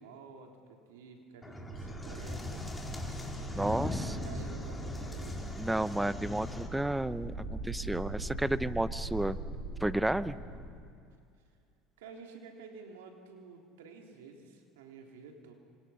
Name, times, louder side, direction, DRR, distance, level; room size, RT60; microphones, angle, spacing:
voice 1, 0.0-2.6 3.5-5.5 12.0-15.5, right 5 dB, 85° right, 3 dB, 3.4 m, -51 dB
sound 1, 1.4-6.7, left 2 dB, 10° left, 4.1 m, -39 dB
sound 2, 1.7-10.6, right 2 dB, 55° right, 6.5 m, -41 dB
voice 2, 3.5-4.0 5.6-9.4 9.8-10.4, right 1 dB, 5° right, 15 dB, 0.9 m, -32 dB
27.5 x 26.5 x 5.8 m, 2.4 s
hypercardioid pair, 80°, 0 cm